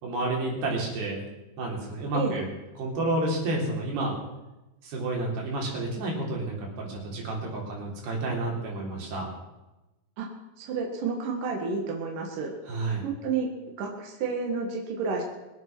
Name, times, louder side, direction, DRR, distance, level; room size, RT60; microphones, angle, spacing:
voice 1, 0.0-1.2 1.6-2.5 2.8-4.2 4.8-9.3 12.7-13.0, right 2 dB, 85° right, -2 dB, 5.5 m, -30 dB
voice 2, 10.6-12.5 13.0-13.5 13.8-15.2, right 5 dB, 60° right, 1 dB, 3.2 m, -30 dB
23.0 x 8.3 x 6.1 m, 1.0 s
omnidirectional pair, 4.5 m